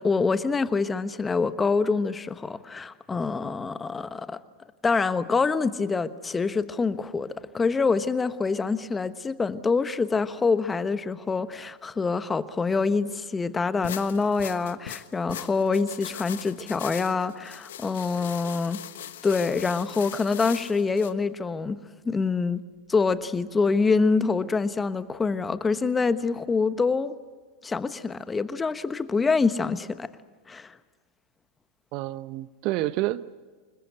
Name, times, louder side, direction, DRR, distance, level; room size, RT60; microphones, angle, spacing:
voice 1, 0.0-4.4 4.8-18.8 19.2-21.8 22.0-22.6 22.9-27.1 27.6-30.1 30.5-30.7, left 4 dB, 20° left, 13 dB, 1.1 m, -25 dB
sound 1, 13.8-21.1, left 11 dB, 70° left, 1.2 m, -40 dB
voice 2, 31.9-33.4, right 16 dB, 50° right, 16 dB, 0.8 m, -29 dB
26.0 x 21.0 x 8.1 m, 1.5 s
hypercardioid pair, 90°, 0 cm